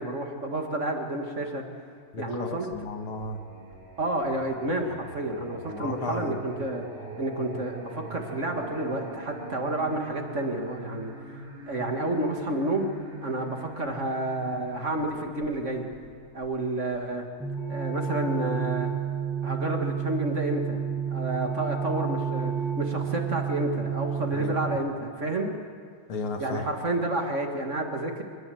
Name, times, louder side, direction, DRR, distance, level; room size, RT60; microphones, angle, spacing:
voice 1, 0.0-1.6 2.1-2.7 4.0-6.8 7.2-11.1 11.7-12.9 13.2-15.9 16.3-17.3 17.7-18.9 19.4-20.8 21.1-25.5 26.4-28.2, right 1 dB, 35° right, 3 dB, 2.3 m, -30 dB
voice 2, 2.1-3.4 5.7-6.4 24.3-24.6 26.1-26.7, left 2 dB, 80° left, 5 dB, 2.6 m, -34 dB
Singing, 2.7-17.4, right 2 dB, 65° right, 6.0 m, -43 dB
sound 1, 17.4-24.8, right 7 dB, ahead, 7.7 m, -30 dB
25.5 x 20.0 x 7.9 m, 2.1 s
omnidirectional pair, 2.3 m